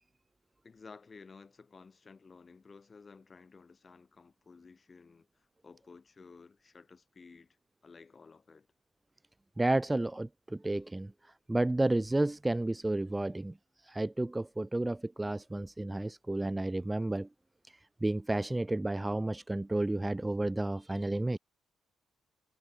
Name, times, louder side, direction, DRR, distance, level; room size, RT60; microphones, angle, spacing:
voice 1, 0.6-7.6 7.8-8.7, left 4 dB, 35° left, 3.0 m, -54 dB
voice 2, 9.6-11.1 11.5-13.5 13.8-17.3 18.0-21.4, right 2 dB, 15° right, 0.3 m, -31 dB
cardioid pair, 90°, 0 cm